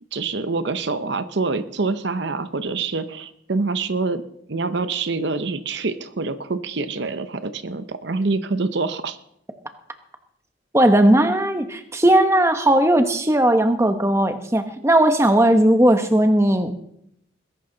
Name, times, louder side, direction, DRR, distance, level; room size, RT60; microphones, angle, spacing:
voice 1, 0.1-4.2 4.5-9.2, right 3 dB, 60° right, 11 dB, 0.7 m, -26 dB
voice 2, 10.7-16.7, right 1 dB, 15° right, 7 dB, 1.0 m, -17 dB
20.5 x 11.0 x 3.9 m, 0.74 s
head